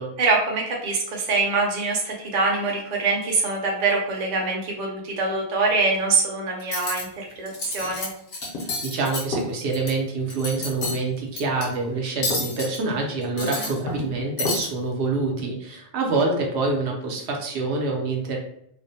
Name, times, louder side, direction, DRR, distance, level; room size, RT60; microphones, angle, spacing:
voice 1, 0.2-8.1 13.4-13.7, right 3 dB, 50° right, -1 dB, 0.6 m, -24 dB
Cutlery silverware, 6.6-7.0 7.5-8.1 8.3-9.9 10.3-11.0 11.4-11.6 12.2-12.8 13.2-14.1 14.4-14.7, left 2 dB, 65° left, 0.8 m, -29 dB
voice 2, 8.5-18.4, right 3 dB, 75° right, 1 dB, 0.9 m, -26 dB
2.5 x 2.0 x 2.6 m, 0.71 s
omnidirectional pair, 1.1 m